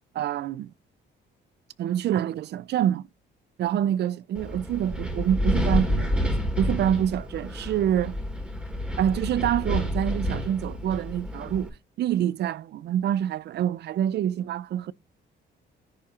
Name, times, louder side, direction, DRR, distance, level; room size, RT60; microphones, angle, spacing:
voice 1, 0.1-0.7 1.8-3.0 3.6-8.2 9.0-11.7 12.0-14.9, right 10 dB, 60° right, 0.4 m, -26 dB
Wind, 4.3-11.7, equal, 5° right, 2.2 m, -29 dB
10.5 x 4.3 x 2.5 m
cardioid pair, 90°, 20 cm